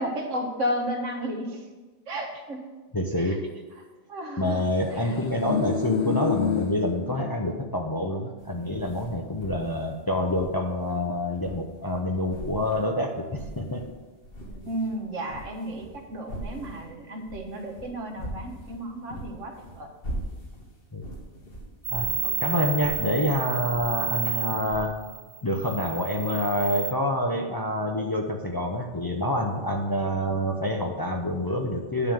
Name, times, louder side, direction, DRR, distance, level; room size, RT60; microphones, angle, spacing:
voice 1, 0.0-1.6 2.1-2.6 3.3-3.4 4.1-4.6 5.0-5.1 14.6-19.9 22.2-22.7, equal, 90° right, 3 dB, 1.6 m, -33 dB
voice 2, 2.9-3.5 4.4-13.9 20.9-21.1 21.9-22.1 22.4-25.0 25.4-32.1, left 1 dB, 25° left, 2 dB, 0.5 m, -27 dB
sound 1, 5.1-7.8 8.1-8.2, left 8 dB, 65° left, 0.9 m, -29 dB
sound 2, 8.4-12.0 12.3-13.9 14.2-24.8, equal, 50° left, 1.7 m, -41 dB
sound 3, 21.8-26.9, right 6 dB, 60° right, 0.6 m, -31 dB
9.9 x 3.8 x 7.1 m, 1.2 s
omnidirectional pair, 1.2 m